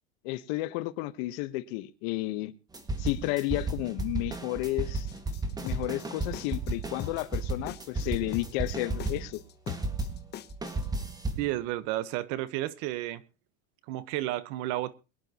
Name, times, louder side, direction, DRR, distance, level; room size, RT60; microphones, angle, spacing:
voice 1, 0.2-2.5 3.0-5.1 5.6-9.4, left 18 dB, 60° left, 1.2 m, -32 dB
sound 1, 2.7-9.4 9.7-11.5, right 2 dB, 10° right, 1.8 m, -33 dB
sound 2, 5.1-10.9, left 11 dB, 30° left, 1.0 m, -41 dB
voice 2, 11.4-13.2 13.9-14.9, right 15 dB, 55° right, 1.2 m, -32 dB
23.0 x 10.5 x 2.9 m
supercardioid pair, 140°, 34 cm